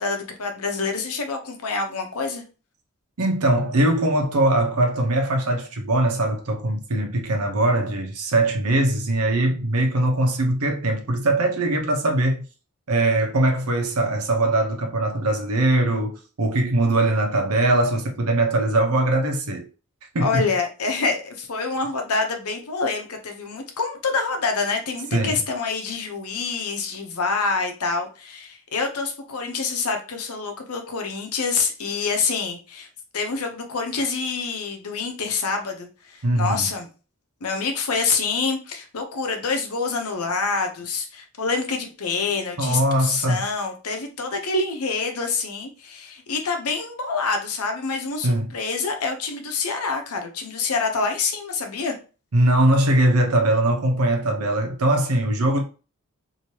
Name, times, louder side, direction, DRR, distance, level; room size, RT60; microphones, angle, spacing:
voice 1, 0.0-2.4 20.2-32.9 33.1-36.9 37.4-52.0, left 4 dB, 85° left, 0.8 m, -26 dB
voice 2, 3.2-12.4 12.9-19.7 20.1-20.4 25.1-25.4 36.2-36.7 42.6-43.4 48.2-48.5 52.3-55.6, right 1 dB, 90° right, 0.9 m, -21 dB
2.9 x 2.8 x 3.1 m
head